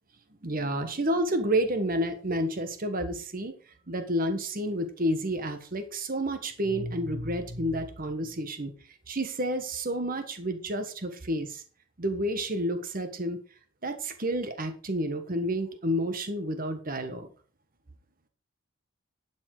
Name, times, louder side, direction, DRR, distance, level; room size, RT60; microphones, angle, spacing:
voice 1, 0.4-3.6 3.9-8.7 9.1-11.6 12.0-13.4 13.8-17.3, right 1 dB, 40° right, 8 dB, 1.4 m, -30 dB
11.5 x 7.3 x 4.9 m, 0.40 s
head